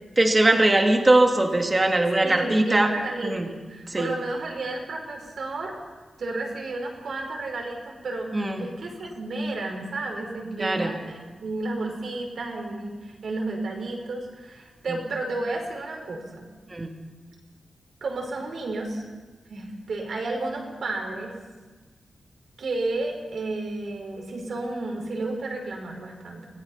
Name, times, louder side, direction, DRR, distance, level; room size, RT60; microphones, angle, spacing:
voice 1, 0.2-2.9 3.2-3.5 3.9-4.1 8.3-8.7 10.6-10.9 14.9-15.0 16.7-16.9, right 2 dB, 25° right, 3 dB, 2.6 m, -21 dB
voice 2, 2.2-5.8 6.2-16.4 18.0-19.0 19.5-21.3 22.6-26.5, right 2 dB, 70° right, 1 dB, 5.2 m, -32 dB
25.5 x 17.5 x 5.7 m, 1.3 s
wide cardioid pair, 90°, 0 cm